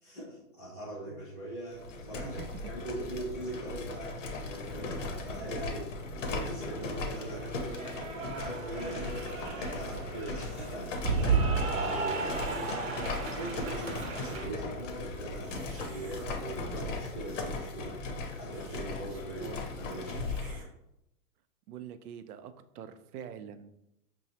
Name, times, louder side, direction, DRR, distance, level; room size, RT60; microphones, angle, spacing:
voice 1, 0.0-5.9 6.2-11.4 11.7-18.0 18.4-20.2, right 1 dB, 20° left, -10 dB, 0.4 m, -41 dB
sound 1, 1.7-20.6, left 3 dB, 55° left, 0.7 m, -38 dB
Cheering / Applause, 6.8-14.5, right 4 dB, 60° right, 0.9 m, -34 dB
sound 2, 10.4-11.1 11.7-12.9 13.4-13.5 13.7-14.5 15.4-16.3 16.9-17.8 18.1-18.2 18.5-19.3 19.6-19.7 19.9-20.7, right 3 dB, 30° right, 0.7 m, -52 dB
voice 2, 12.6-13.2 19.4-19.6 21.7-23.7, right 8 dB, 75° right, 11 dB, 0.5 m, -45 dB
5.2 x 2.0 x 2.8 m, 0.82 s
hypercardioid pair, 155°, 45 cm